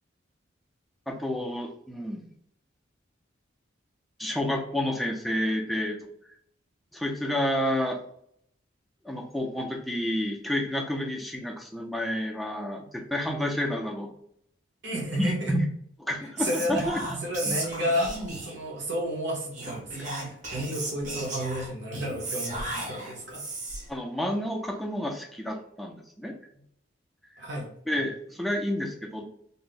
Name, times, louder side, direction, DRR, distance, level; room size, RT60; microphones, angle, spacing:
voice 1, 1.1-2.3 4.2-6.1 6.9-8.0 9.0-14.1 15.1-15.7 16.0-17.2 17.5-17.6 23.9-26.3 27.9-29.2, left 1 dB, ahead, 0 dB, 0.4 m, -30 dB
voice 2, 14.8-15.5 16.4-16.8 17.2-23.4 27.4-27.7, equal, 65° right, -3 dB, 0.9 m, -31 dB
Whispering, 16.4-18.7 19.5-24.0, right 2 dB, 40° right, 0.8 m, -35 dB
2.6 x 2.0 x 3.8 m, 0.69 s
head